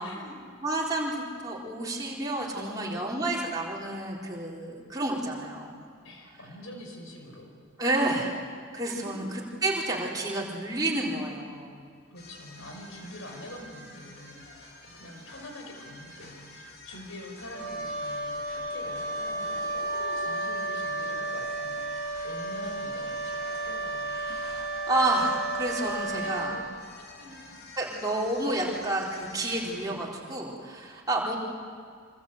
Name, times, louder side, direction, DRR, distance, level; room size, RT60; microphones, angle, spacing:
voice 1, 0.0-0.5 2.5-3.2 6.0-7.5 8.1-8.2 8.9-9.4 12.1-14.5 14.8-24.2 26.2-26.6 26.9-27.4 29.8-30.0, left 1 dB, 80° left, 3 dB, 5.2 m, -45 dB
voice 2, 0.6-5.8 7.8-8.3 8.7-11.8 24.2-26.5 27.8-31.4, right 2 dB, 20° right, -3 dB, 4.1 m, -30 dB
sound 1, 12.2-29.9, left 2 dB, 50° left, 3.8 m, -48 dB
Wind instrument woodwind instrument, 17.5-26.6, right 2 dB, 25° left, 6.4 m, -33 dB
26.0 x 25.5 x 8.0 m, 2.1 s
head